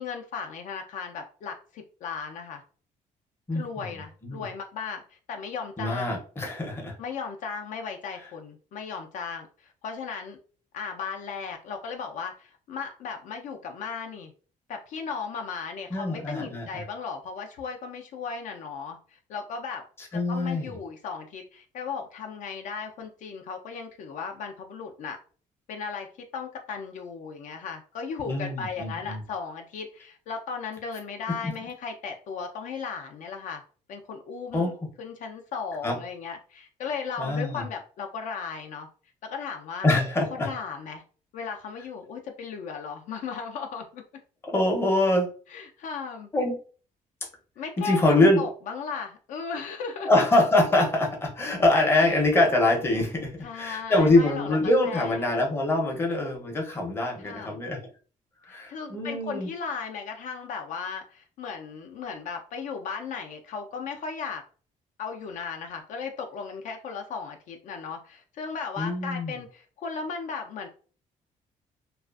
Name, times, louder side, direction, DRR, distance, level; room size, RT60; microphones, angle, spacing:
voice 1, 0.0-2.6 3.5-6.2 7.0-10.4 10.7-14.3 14.7-19.8 20.3-25.2 25.7-33.6 33.9-34.7 35.0-38.9 39.2-39.9 40.3-41.0 41.3-44.0 45.5-46.3 47.6-50.1 52.1-52.3 53.4-54.6 54.8-55.6 57.2-57.6 58.5-64.4 65.0-70.7, left 5 dB, 65° left, 4 dB, 0.4 m, -36 dB
voice 2, 3.5-3.8 4.2-4.4 5.8-7.0 15.9-16.8 20.1-20.7 28.3-29.2 31.4-31.5 34.5-34.7 35.8-36.0 37.2-37.6 39.8-40.5 44.4-45.3 46.3-46.6 47.8-48.4 50.1-57.8 58.4-59.5 68.8-69.4, left 2 dB, 15° left, 0 dB, 0.6 m, -24 dB
2.4 x 2.3 x 2.3 m, 0.40 s
cardioid pair, 150°, 14 cm